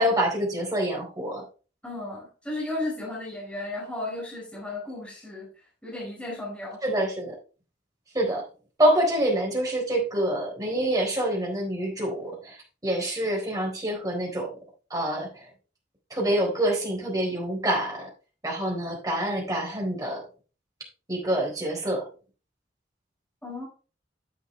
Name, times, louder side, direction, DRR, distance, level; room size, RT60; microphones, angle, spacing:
voice 1, 0.0-1.4 6.8-7.4 8.1-8.4 8.8-14.5 14.9-15.5 16.1-18.1 18.4-20.2 21.1-22.0, right 1 dB, 20° right, 4.0 m, -26 dB
voice 2, 1.8-5.5 5.8-6.8 23.4-23.7, left 2 dB, 5° left, 4.6 m, -34 dB
10.5 x 7.7 x 3.3 m
head